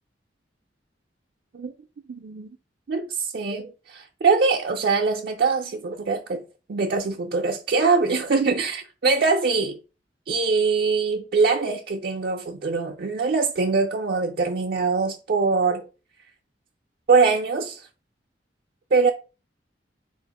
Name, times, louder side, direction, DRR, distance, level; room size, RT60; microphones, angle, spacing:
voice 1, 2.1-2.6 2.9-6.4 6.7-9.8 10.3-15.9 17.1-17.9 18.9-19.1, right 4 dB, 60° right, 0.5 m, -23 dB
4.4 x 2.4 x 4.0 m
head